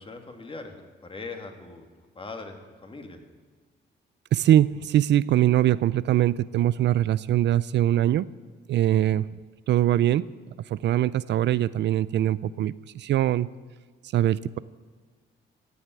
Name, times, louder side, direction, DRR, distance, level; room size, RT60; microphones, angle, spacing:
voice 1, 0.0-2.6 2.8-3.2, left 3 dB, 25° left, 4 dB, 2.4 m, -40 dB
voice 2, 4.3-8.3 8.7-9.4 9.7-10.3 10.7-13.5 14.1-14.6, right 12 dB, 65° right, 18 dB, 0.4 m, -22 dB
16.0 x 8.0 x 9.6 m, 1.5 s
cardioid pair, 90°, 20 cm